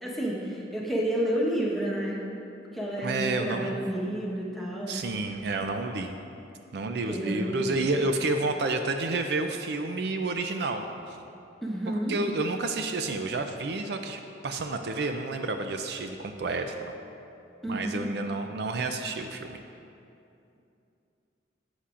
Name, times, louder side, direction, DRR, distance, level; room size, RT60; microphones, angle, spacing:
voice 1, 0.0-2.2 2.7-5.0 7.1-7.7 11.6-12.1 17.6-18.1, right 1 dB, ahead, -5 dB, 1.2 m, -30 dB
voice 2, 3.0-3.8 4.9-6.2 6.7-11.2 11.9-16.7 17.7-19.6, right 3 dB, 65° right, 6 dB, 0.4 m, -30 dB
11.0 x 8.1 x 2.5 m, 2.7 s
head